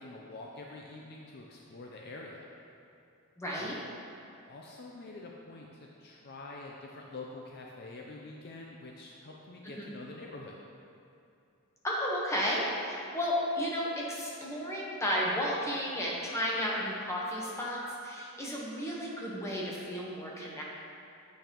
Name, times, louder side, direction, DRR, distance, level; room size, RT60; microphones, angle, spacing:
voice 1, 0.0-2.5 3.6-3.8 4.5-10.5, left 2 dB, 50° left, -1 dB, 0.5 m, -46 dB
voice 2, 3.4-3.8 9.8-9.9 11.8-20.6, equal, 15° left, -5 dB, 1.1 m, -33 dB
8.7 x 5.2 x 3.0 m, 2.7 s
head